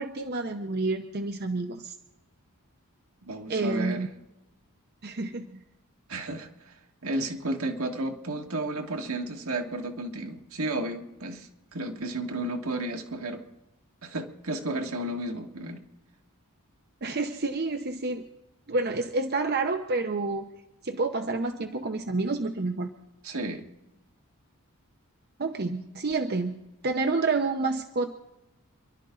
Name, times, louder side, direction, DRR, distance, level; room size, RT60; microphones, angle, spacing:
voice 1, 0.0-1.9 3.5-4.1 5.0-5.6 17.0-18.3 18.7-20.5 20.8-22.9 25.4-28.2, right 3 dB, 45° right, 6 dB, 0.8 m, -29 dB
voice 2, 3.2-4.0 6.1-6.7 7.0-13.4 14.0-15.8 23.2-23.7, right 2 dB, 75° right, 3 dB, 1.8 m, -32 dB
28.5 x 12.0 x 3.9 m, 0.96 s
head